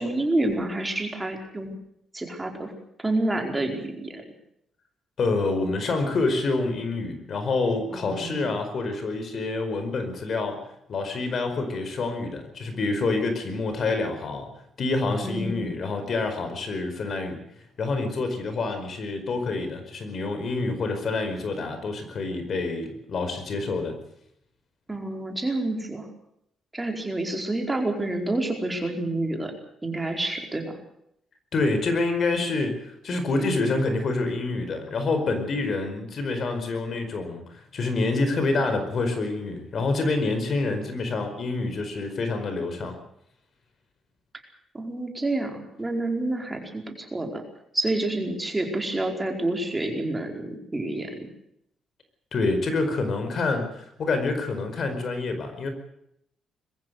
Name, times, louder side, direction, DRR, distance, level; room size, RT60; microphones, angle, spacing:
voice 1, 0.0-1.8 2.1-2.7 3.0-4.2 7.9-8.5 15.2-15.6 24.9-26.1 26.7-29.5 29.8-30.7 44.7-47.4 47.7-51.3, right 2 dB, 15° right, 3 dB, 4.7 m, -28 dB
voice 2, 5.2-10.6 10.9-14.5 14.8-17.4 17.8-23.9 31.5-43.0 52.3-55.7, left 3 dB, 55° left, 7 dB, 4.8 m, -27 dB
22.0 x 15.0 x 8.2 m, 0.74 s
cardioid pair, 100°, 0 cm